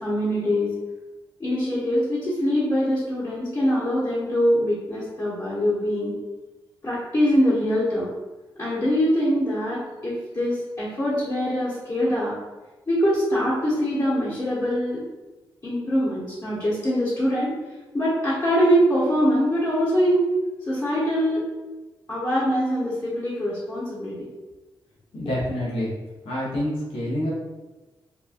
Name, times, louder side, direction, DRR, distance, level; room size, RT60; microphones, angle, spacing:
voice 1, 0.0-0.7 1.4-6.1 6.8-8.1 8.6-12.3 12.9-15.0 15.6-17.5 17.9-20.3 20.7-21.4 22.1-24.3, equal, 40° left, -9 dB, 1.0 m, -23 dB
voice 2, 25.1-25.9 26.2-27.3, left 1 dB, 75° left, -7 dB, 0.9 m, -27 dB
2.9 x 2.2 x 2.4 m, 1.1 s
cardioid pair, 60°, 9 cm